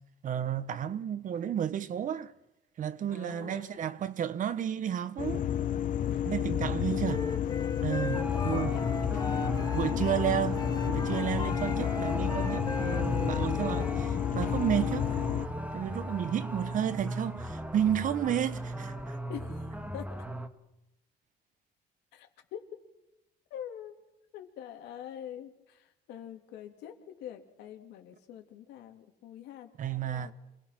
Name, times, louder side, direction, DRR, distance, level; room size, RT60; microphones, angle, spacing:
voice 1, 0.2-2.3 2.8-5.4 6.3-7.2 7.8-8.7 9.7-15.2 15.7-19.2 29.8-30.3, right 9 dB, 50° right, 1.3 m, -32 dB
voice 2, 3.1-3.8 6.0-6.2 6.9-7.0 8.0-9.3 9.5-10.6 19.3-20.2 22.1-22.7 23.5-23.9 24.3-29.7 30.0-30.3, left 10 dB, 85° left, 3.2 m, -45 dB
sound 1, 5.2-15.5, left 10 dB, 50° left, 1.1 m, -31 dB
Wind instrument woodwind instrument, 7.0-10.2 10.5-14.0, left 3 dB, 20° left, 1.1 m, -39 dB
sound 2, 8.1-20.5, right 1 dB, 10° right, 1.8 m, -37 dB
27.5 x 19.5 x 6.1 m
cardioid pair, 110°, 17 cm